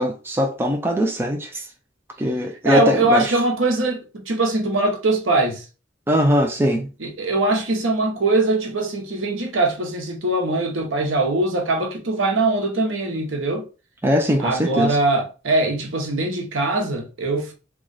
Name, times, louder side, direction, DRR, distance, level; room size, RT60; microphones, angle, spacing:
voice 1, 0.0-1.6 2.2-3.3 6.1-6.9 14.0-15.0, equal, 10° right, 0.4 m, -21 dB
voice 2, 2.6-5.6 7.0-13.6 14.4-17.5, right 2 dB, 85° right, 0.9 m, -22 dB
3.0 x 2.4 x 3.9 m
head